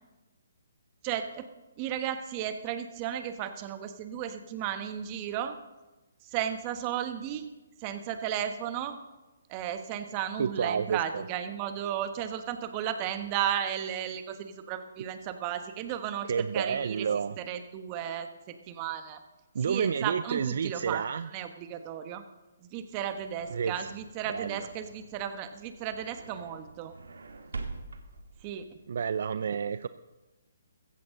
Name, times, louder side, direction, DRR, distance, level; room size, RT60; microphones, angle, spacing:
voice 1, 1.0-1.5 1.8-5.6 6.2-7.5 7.8-9.0 9.5-17.1 17.4-19.2 19.6-21.0 21.3-22.2 22.6-26.9 28.4-28.8, right 10 dB, 30° right, 8 dB, 1.2 m, -34 dB
voice 2, 10.4-11.2 16.3-17.4 19.5-21.3 23.5-23.7 24.3-24.6 28.9-29.9, right 6 dB, 60° right, 14 dB, 0.5 m, -30 dB
sound 1, 22.9-29.2, right 3 dB, 85° right, 1.7 m, -45 dB
15.5 x 15.0 x 3.8 m, 1.1 s
hypercardioid pair, 145°, 0 cm